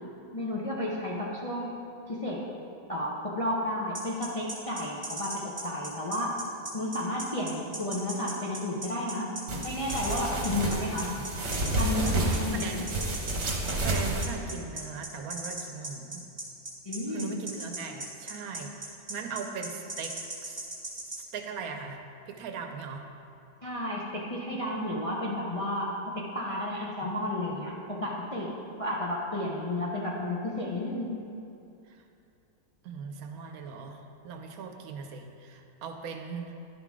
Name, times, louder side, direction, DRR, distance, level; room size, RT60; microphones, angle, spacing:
voice 1, 0.3-1.7 2.1-2.4 2.9-6.4 6.7-9.3 9.6-11.1 11.7-12.8 16.8-17.3 23.6-31.2, left 1 dB, 35° left, -5 dB, 0.5 m, -32 dB
sound 1, 3.9-21.2, right 2 dB, 25° right, 1.5 m, -38 dB
sound 2, 9.5-14.2, right 2 dB, 50° right, 1.2 m, -30 dB
voice 2, 10.3-11.3 12.6-12.9 13.8-16.2 17.1-20.7 21.1-23.1 31.9-32.0 32.8-36.5, right 5 dB, 75° right, 4 dB, 1.1 m, -40 dB
11.0 x 3.8 x 4.7 m, 2.7 s
omnidirectional pair, 1.6 m